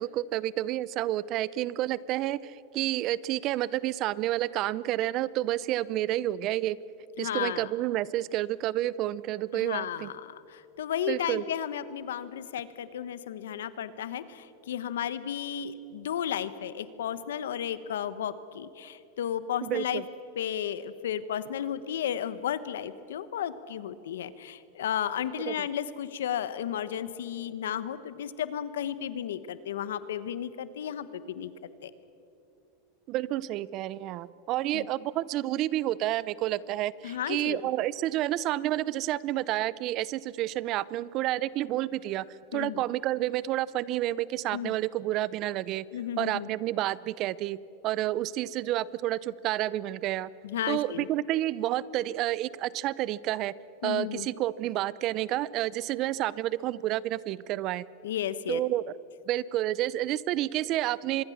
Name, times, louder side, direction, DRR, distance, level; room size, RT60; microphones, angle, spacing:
voice 1, 0.0-6.8 7.2-10.1 11.1-11.4 19.6-20.0 25.5-25.7 33.1-42.3 42.5-45.8 46.2-47.6 47.8-50.3 50.7-53.5 53.8-57.9 58.5-58.8 59.3-61.2, right 14 dB, 45° right, 20 dB, 0.7 m, -30 dB
voice 2, 7.2-7.7 9.5-20.0 20.3-31.5 31.8-31.9 34.7-34.9 37.0-37.7 42.5-42.8 44.5-44.7 45.9-46.5 50.4-51.1 53.8-54.3 58.0-58.6, left 9 dB, 90° left, 14 dB, 1.2 m, -33 dB
25.5 x 22.0 x 7.3 m, 2.7 s
supercardioid pair, 130°, 0 cm